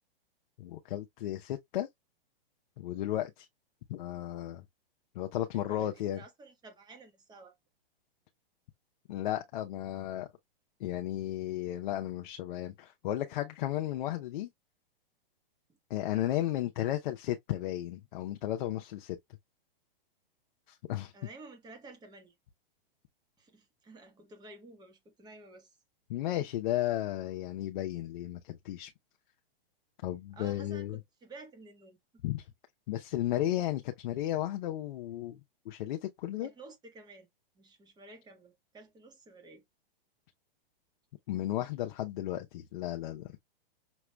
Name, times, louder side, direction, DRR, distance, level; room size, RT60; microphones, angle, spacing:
voice 1, 0.6-1.9 2.8-3.5 3.9-4.6 5.1-6.2 9.1-10.3 10.8-14.5 15.9-19.2 20.7-21.1 26.1-28.9 30.0-31.0 32.2-32.5 32.9-36.5 41.3-43.3, left 13 dB, 55° left, 0.8 m, -34 dB
voice 2, 5.5-7.5 21.1-22.3 23.4-25.8 30.3-32.2 36.4-37.3 37.5-39.6, right 3 dB, 15° right, 1.4 m, -52 dB
6.1 x 3.0 x 2.3 m
hypercardioid pair, 125°, 29 cm